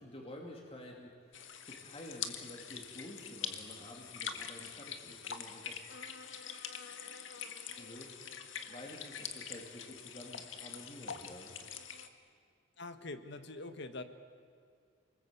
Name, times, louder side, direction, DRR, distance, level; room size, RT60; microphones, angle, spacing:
voice 1, 0.0-5.8 7.8-8.1 8.7-11.6, left 1 dB, 30° left, 0 dB, 2.7 m, -50 dB
sound 1, 1.3-12.1, left 7 dB, 80° left, 1.8 m, -44 dB
voice 2, 12.8-14.0, left 2 dB, 60° left, 9 dB, 1.7 m, -44 dB
29.0 x 20.5 x 8.3 m, 2.3 s
head